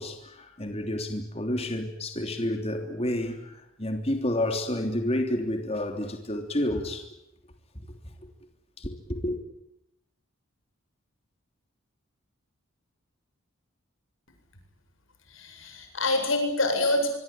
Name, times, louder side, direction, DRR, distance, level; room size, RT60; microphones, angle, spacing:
voice 1, 0.0-7.1 7.7-8.1 8.8-9.4, left 1 dB, 30° left, 3.2 m, -30 dB
voice 2, 15.3-17.1, left 2 dB, 70° left, 7.9 m, -26 dB
24.5 x 24.5 x 9.0 m
head